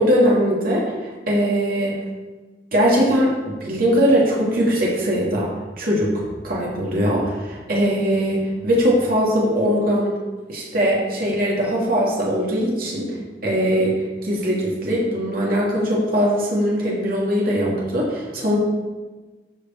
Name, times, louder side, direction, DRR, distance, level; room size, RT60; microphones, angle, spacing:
voice 1, 0.0-1.9 2.7-3.3 3.6-5.5 5.8-10.1 10.5-13.1 13.4-13.9 14.2-18.6, equal, 55° right, -4 dB, 2.5 m, -20 dB
13.0 x 5.1 x 4.4 m, 1.3 s
head